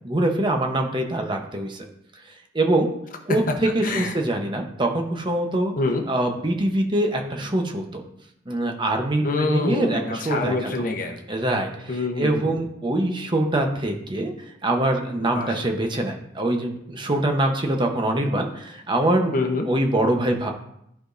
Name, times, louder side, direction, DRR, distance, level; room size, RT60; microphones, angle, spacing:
voice 1, 0.0-1.8 2.5-2.9 3.3-5.7 6.1-8.0 8.5-10.7 11.3-11.7 12.2-14.3 14.6-19.3 19.7-20.5, right 1 dB, 25° right, 3 dB, 0.9 m, -24 dB
voice 2, 3.8-4.1 5.8-6.0 9.2-11.2 11.9-12.6 15.2-15.6 19.3-19.7, left 3 dB, 45° left, 4 dB, 0.9 m, -26 dB
13.0 x 4.9 x 2.6 m, 0.75 s
head